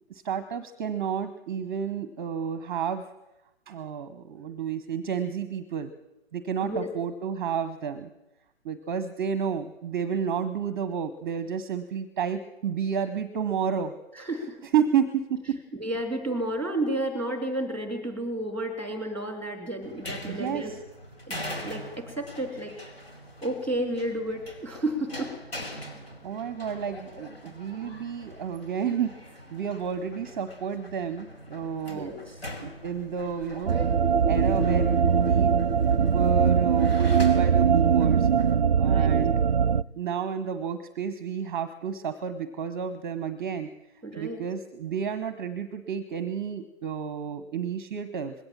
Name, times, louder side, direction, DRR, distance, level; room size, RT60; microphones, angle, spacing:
voice 1, 0.1-3.1 3.7-5.9 6.3-8.1 8.6-13.9 14.7-15.6 20.3-20.8 26.2-32.3 32.6-33.8 34.2-35.6 36.0-38.3 38.7-39.4 40.0-43.7 44.2-48.3, right 7 dB, 20° right, 12 dB, 0.9 m, -31 dB
voice 2, 14.2-14.6 15.7-20.7 21.3-22.7 23.4-25.3 31.9-32.3 38.9-39.2 44.0-44.4, right 1 dB, 5° left, 6 dB, 3.0 m, -31 dB
sound 1, 19.8-38.5, left 1 dB, 65° left, 5.2 m, -43 dB
sound 2, 32.3-37.3, equal, 35° left, 2.8 m, -36 dB
sound 3, 33.7-39.8, right 7 dB, 45° right, 0.6 m, -21 dB
20.5 x 17.0 x 7.4 m, 0.97 s
figure-of-eight pair, 135°, 33 cm